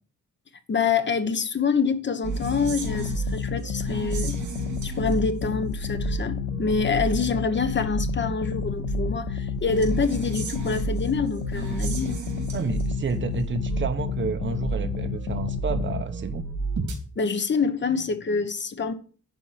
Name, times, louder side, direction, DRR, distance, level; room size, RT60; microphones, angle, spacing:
voice 1, 0.7-4.4 4.8-12.2 17.2-18.9, left 5 dB, 35° left, 1.1 m, -26 dB
sound 1, 2.2-17.0, right 4 dB, 70° right, 3.3 m, -31 dB
sound 2, 2.4-16.0, left 16 dB, 85° left, 0.5 m, -32 dB
voice 2, 12.5-16.4, right 5 dB, 40° right, 1.0 m, -30 dB
11.0 x 4.5 x 7.4 m
wide cardioid pair, 135°, 30 cm